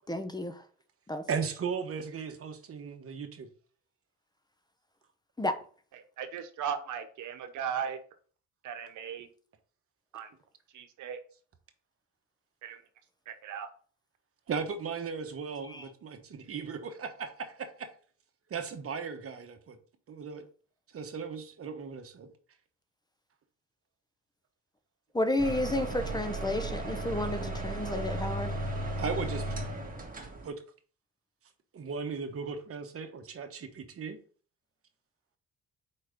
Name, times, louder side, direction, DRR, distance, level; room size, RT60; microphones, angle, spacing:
voice 1, 0.1-0.5 1.1-1.2 5.4-5.6 15.7-15.8 25.1-28.5, left 1 dB, 15° left, 0.8 m, -31 dB
voice 2, 1.3-3.5 14.5-17.9 18.5-19.8 20.1-20.5 20.9-22.3 29.0-29.5 30.4-30.6 31.7-34.2, right 5 dB, 50° right, 1.2 m, -37 dB
voice 3, 5.9-8.0 8.6-9.3 10.1-10.3 10.7-11.2 12.6-12.8 13.3-13.7, right 8 dB, 75° right, 1.0 m, -37 dB
sound 1, 25.4-30.5, right 1 dB, 30° right, 1.7 m, -35 dB
4.9 x 4.4 x 5.2 m
cardioid pair, 90°, 30 cm